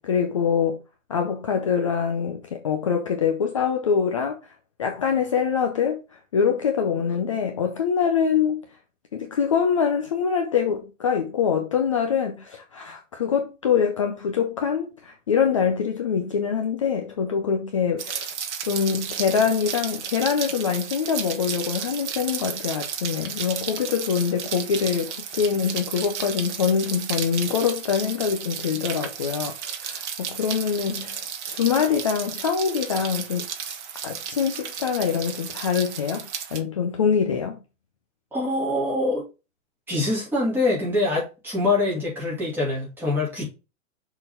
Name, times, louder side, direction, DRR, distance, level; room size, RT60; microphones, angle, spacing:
voice 1, 0.0-0.8 1.1-4.4 4.8-6.0 6.3-8.6 9.1-18.3 18.7-33.8 34.0-37.6, left 7 dB, 25° left, 0.5 m, -24 dB
Rain, 18.0-36.6, right 8 dB, 55° right, 1.4 m, -33 dB
voice 2, 38.3-39.3 39.9-43.5, left 2 dB, 5° right, 2.3 m, -24 dB
6.6 x 3.9 x 5.6 m
hypercardioid pair, 170°, 41 cm